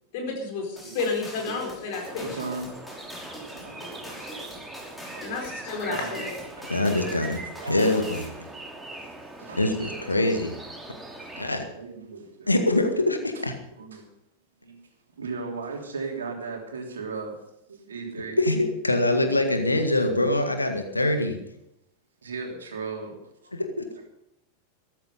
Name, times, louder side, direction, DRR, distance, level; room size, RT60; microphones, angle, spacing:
voice 1, 0.1-2.3 5.2-6.4, left 4 dB, 50° left, 2 dB, 4.7 m, -31 dB
sound 1, 0.8-8.4, equal, 10° left, 5.2 m, -42 dB
voice 2, 0.8-2.7 3.3-4.7 5.1-5.4 5.8-6.2 6.5-6.7 7.6-7.9 9.4-10.1 11.2-11.3 11.7-12.5 13.3-13.4 13.7-14.0 14.6-14.8 15.2-17.4 17.7-18.4 22.2-23.2, right 4 dB, 70° right, 2 dB, 3.2 m, -37 dB
sound 2, 2.0-11.5, right 2 dB, 10° right, 2.8 m, -40 dB
voice 3, 6.7-7.4 7.7-8.2 9.6-10.5 11.4-11.7 12.5-13.6 18.4-21.4 23.5-23.8, left 2 dB, 80° left, 6 dB, 1.8 m, -24 dB
14.0 x 13.0 x 5.5 m, 0.82 s
figure-of-eight pair, 90°, 0 cm